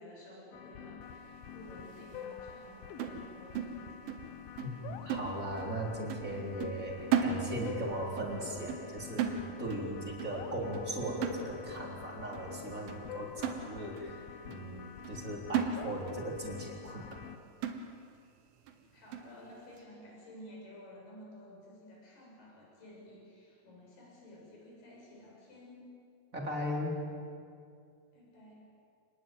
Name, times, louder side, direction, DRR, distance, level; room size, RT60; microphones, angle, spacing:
voice 1, 0.0-4.0 18.9-25.9 28.1-28.5, left 1 dB, 40° left, -2 dB, 8.3 m, -52 dB
sound 1, 0.5-17.4, left 8 dB, 85° left, 2.0 m, -47 dB
sound 2, 3.0-4.3 4.6-4.8 5.1-5.8 6.1-6.3 6.6-7.9 8.2-8.4 8.7-8.9 9.2-9.9 10.2-10.4 10.7-10.9 11.2-11.9 12.3-12.5 12.9-13.0 13.4-14.1 14.5-14.6 15.1-15.2 15.5-16.3 16.6-16.7 17.1-17.3 17.6-18.2 18.7-18.8 19.1-19.4, right 7 dB, 75° right, 3.8 m, -35 dB
voice 2, 4.6-17.2 26.3-27.0, right 1 dB, 20° right, -2 dB, 3.3 m, -38 dB
27.0 x 20.0 x 9.2 m, 2.3 s
omnidirectional pair, 6.0 m